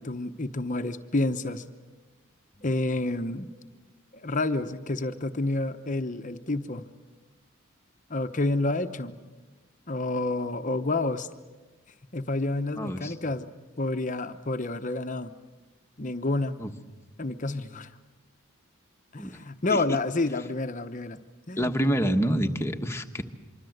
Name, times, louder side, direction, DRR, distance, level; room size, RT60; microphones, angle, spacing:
voice 1, 0.0-1.6 2.6-3.5 4.1-6.9 8.1-9.2 9.9-11.3 12.1-13.5 13.8-15.3 16.0-16.6 17.2-17.9 19.1-21.2 21.5-21.7, left 2 dB, 40° left, 9 dB, 0.9 m, -29 dB
voice 2, 12.7-13.1 16.6-16.7 19.2-19.4 19.7-20.0 21.6-23.2, equal, 15° left, 5 dB, 1.3 m, -27 dB
25.5 x 24.5 x 7.9 m, 1.2 s
head